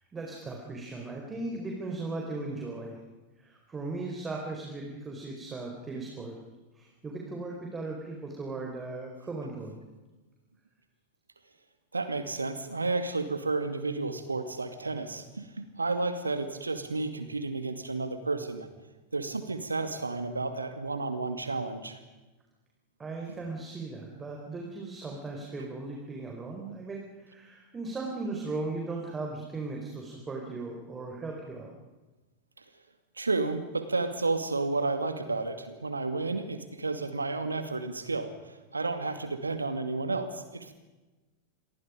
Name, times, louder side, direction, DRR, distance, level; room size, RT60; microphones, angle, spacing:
voice 1, 0.1-3.0 3.4-6.3 6.7-9.8 23.0-31.7, right 3 dB, 15° right, 0 dB, 4.8 m, -37 dB
voice 2, 11.9-18.7 19.1-22.0 33.2-38.3 38.7-40.7, right 3 dB, 80° right, 9 dB, 2.5 m, -31 dB
28.0 x 23.0 x 5.2 m, 1.2 s
figure-of-eight pair, 90°, 0 cm